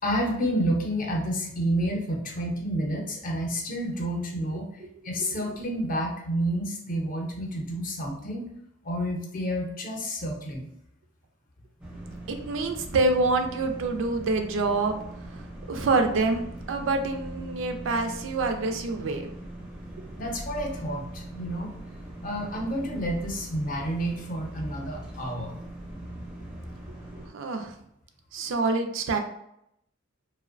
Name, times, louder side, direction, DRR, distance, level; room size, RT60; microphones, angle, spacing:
voice 1, 0.0-4.7 5.0-8.4 8.8-10.7 20.2-21.7 22.2-25.6, equal, 45° left, 0 dB, 0.5 m, -29 dB
sound 1, 11.8-27.3, right 1 dB, 5° right, 0.4 m, -41 dB
voice 2, 12.3-15.0 15.3-16.4 16.7-19.3 27.3-27.7 28.3-29.2, right 3 dB, 75° right, 5 dB, 0.4 m, -26 dB
2.5 x 2.1 x 2.4 m, 0.76 s
head